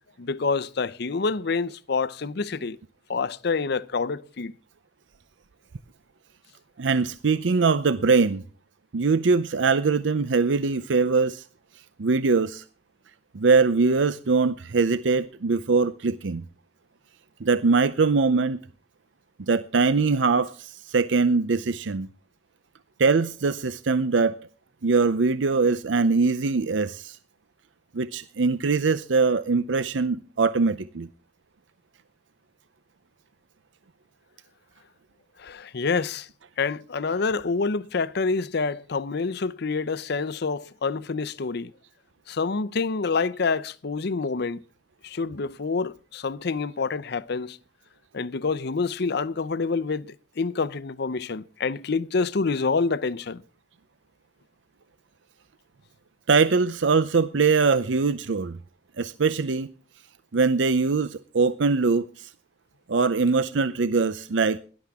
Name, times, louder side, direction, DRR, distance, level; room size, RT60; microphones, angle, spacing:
voice 1, 0.2-2.8 3.1-4.5 35.4-36.3 36.6-41.7 42.3-44.6 45.0-47.6 48.1-53.4, left 4 dB, 60° left, 0.6 m, -27 dB
voice 2, 6.8-8.4 8.9-11.4 12.0-12.6 13.3-16.4 17.4-18.6 19.5-22.1 23.0-24.3 24.8-27.2 27.9-31.1 56.3-58.6 59.0-59.7 60.3-62.3 62.9-64.6, right 4 dB, 85° right, 0.6 m, -22 dB
18.5 x 11.5 x 3.6 m
head